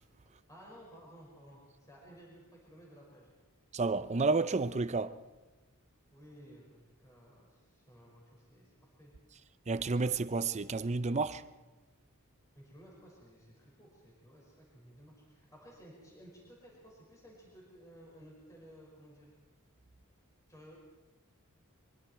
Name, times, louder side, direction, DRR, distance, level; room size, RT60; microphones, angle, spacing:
voice 1, 0.5-3.3 6.1-9.1 12.5-19.3 20.5-20.8, equal, 15° left, 5.7 m, -56 dB
voice 2, 3.7-5.2 9.7-11.4, right 3 dB, 30° right, 0.6 m, -31 dB
24.0 x 24.0 x 4.6 m
head